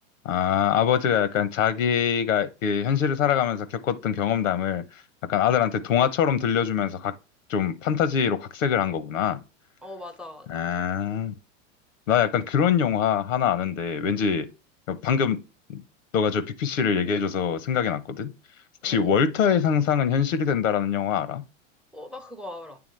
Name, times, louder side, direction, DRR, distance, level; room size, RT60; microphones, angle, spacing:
voice 1, 0.2-4.8 5.3-7.1 7.5-9.4 10.5-11.3 12.1-14.5 14.9-15.4 15.7-15.8 16.1-18.3 18.8-21.4, left 8 dB, 90° left, 0.9 m, -24 dB
voice 2, 9.8-10.7 18.8-19.1 21.9-22.8, left 2 dB, ahead, 0.4 m, -40 dB
8.9 x 3.6 x 3.2 m
hypercardioid pair, 120°, 38 cm